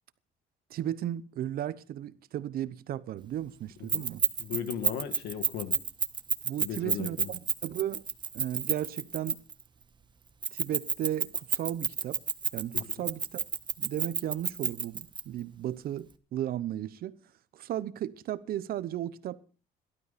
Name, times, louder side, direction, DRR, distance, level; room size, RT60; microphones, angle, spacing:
voice 1, 0.7-4.2 6.4-8.0 8.3-9.4 10.5-12.2 12.5-13.4 13.8-17.1 17.5-19.4, right 11 dB, 60° right, 0.9 m, -35 dB
Keys jangling, 3.9-9.6 10.4-15.2, right 5 dB, 25° right, 1.2 m, -30 dB
voice 2, 4.4-5.8 6.6-7.3 12.7-12.8, left 9 dB, 80° left, 1.9 m, -36 dB
18.0 x 12.5 x 4.2 m
cardioid pair, 110°, 17 cm